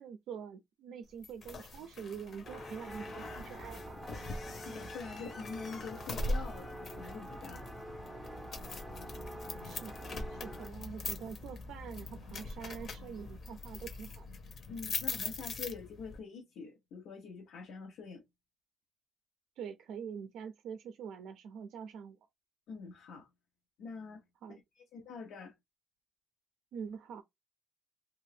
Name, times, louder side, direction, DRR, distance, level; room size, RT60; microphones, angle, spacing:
voice 1, 0.0-4.0 9.6-14.3 19.6-22.2 24.4-24.6 26.7-27.2, right 7 dB, 85° right, 0.4 m, -45 dB
sound 1, 1.2-16.2, left 3 dB, 45° left, 0.7 m, -42 dB
sound 2, 2.4-10.7, right 1 dB, 5° right, 0.5 m, -46 dB
voice 2, 4.7-7.7 14.7-18.2 22.7-23.3 23.8-24.2 24.8-25.5, left 5 dB, 85° left, 0.6 m, -45 dB
2.7 x 2.4 x 3.2 m
cardioid pair, 145°, 0 cm